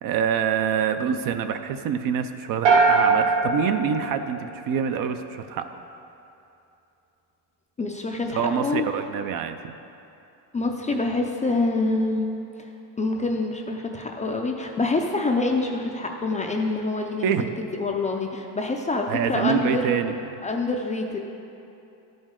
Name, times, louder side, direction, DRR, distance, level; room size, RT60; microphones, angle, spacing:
voice 1, 0.0-5.8 8.3-9.7 17.2-17.6 19.1-20.1, right 8 dB, 50° right, 8 dB, 0.5 m, -26 dB
sound 1, 2.6-4.9, right 4 dB, 80° right, 1.2 m, -21 dB
voice 2, 7.8-8.9 10.5-12.3 12.6-12.7 13.0-17.4 17.8-19.9 20.4-21.2, left 3 dB, 20° left, 2 dB, 0.4 m, -26 dB
12.5 x 5.2 x 3.6 m, 2.8 s
cardioid pair, 125°, 43 cm